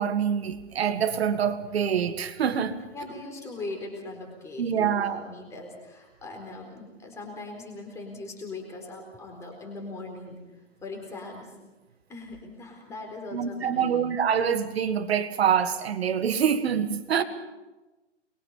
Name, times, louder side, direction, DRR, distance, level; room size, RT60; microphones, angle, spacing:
voice 1, 0.0-2.8 4.6-5.2 13.3-17.2, right 8 dB, 55° right, 10 dB, 1.9 m, -25 dB
voice 2, 2.9-10.4 10.8-11.5 12.1-14.0 17.1-17.2, left 2 dB, 10° left, 1 dB, 4.2 m, -40 dB
24.0 x 22.5 x 5.6 m, 1.1 s
hypercardioid pair, 165°, 36 cm